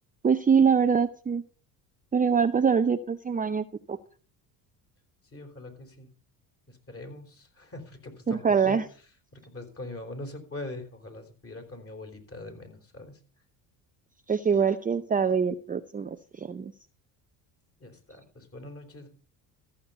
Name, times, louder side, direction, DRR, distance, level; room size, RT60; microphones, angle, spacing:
voice 1, 0.2-1.4 2.1-4.0 8.3-8.8 14.3-16.7, right 6 dB, 20° right, 10 dB, 0.6 m, -24 dB
voice 2, 5.3-6.1 6.7-8.8 9.3-13.2 17.8-19.1, left 2 dB, 30° left, 6 dB, 4.1 m, -42 dB
14.0 x 6.6 x 5.5 m, 0.40 s
hypercardioid pair, 70°, 48 cm